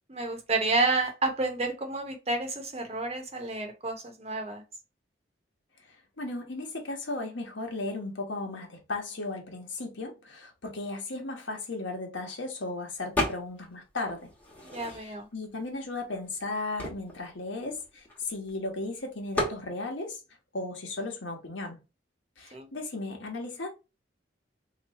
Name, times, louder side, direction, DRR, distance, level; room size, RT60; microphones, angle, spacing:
voice 1, 0.1-4.6 14.6-15.3 22.5-22.7, right 2 dB, 35° right, 0.8 m, -30 dB
voice 2, 6.2-14.3 14.9-20.2 20.5-21.8 22.4-23.7, left 2 dB, 90° left, 1.2 m, -36 dB
sound 1, 13.2-13.7 14.1-15.3 16.0-16.1 16.3-18.5 19.3-19.6, left 1 dB, 10° left, 1.1 m, -33 dB
3.0 x 2.6 x 4.1 m
head